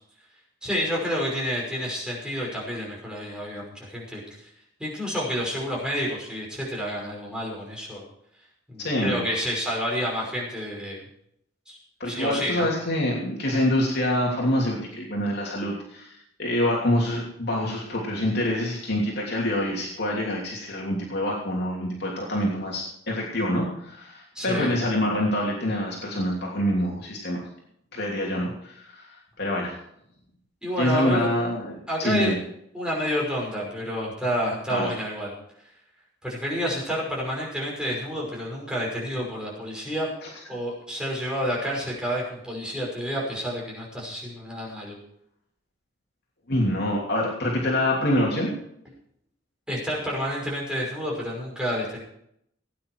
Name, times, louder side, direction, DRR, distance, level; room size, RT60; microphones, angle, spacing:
voice 1, 0.6-4.4 4.8-8.0 8.7-11.0 11.7-11.8 12.0-12.7 24.3-24.7 30.6-31.3 31.9-32.3 32.7-35.3 36.2-40.1 40.5-45.0 49.7-52.0, equal, 5° right, -3 dB, 5.6 m, -29 dB
voice 2, 8.8-9.2 12.0-27.5 27.9-29.7 30.8-32.4 34.7-34.9 40.2-40.3 46.5-48.5, left 1 dB, 60° left, -3 dB, 3.0 m, -26 dB
18.5 x 9.7 x 4.8 m, 0.72 s
head